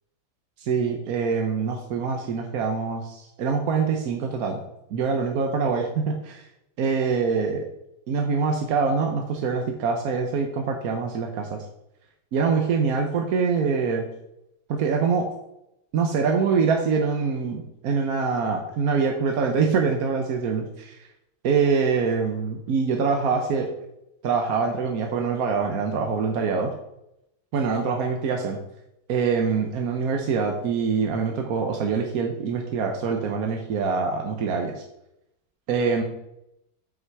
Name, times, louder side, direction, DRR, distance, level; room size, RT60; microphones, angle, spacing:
voice 1, 0.6-4.6 4.9-6.4 6.8-7.7 8.1-11.6 12.3-14.1 14.7-15.3 15.9-21.1 21.4-23.7 24.2-26.7 27.5-28.6 29.1-34.8 35.7-36.0, right 5 dB, 60° right, 2 dB, 1.1 m, -24 dB
7.8 x 6.1 x 4.7 m, 0.83 s
omnidirectional pair, 2.2 m